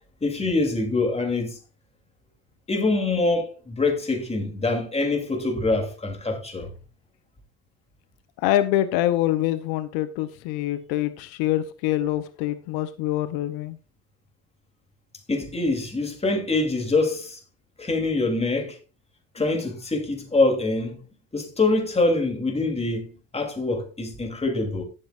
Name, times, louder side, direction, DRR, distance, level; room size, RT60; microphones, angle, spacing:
voice 1, 0.2-1.6 2.7-6.7 15.3-17.4 17.8-18.8 19.3-21.0 21.3-24.8, left 2 dB, 15° left, 3.1 m, -24 dB
voice 2, 8.4-13.8, left 13 dB, 90° left, 0.9 m, -25 dB
17.5 x 7.6 x 2.5 m
cardioid pair, 105°, 36 cm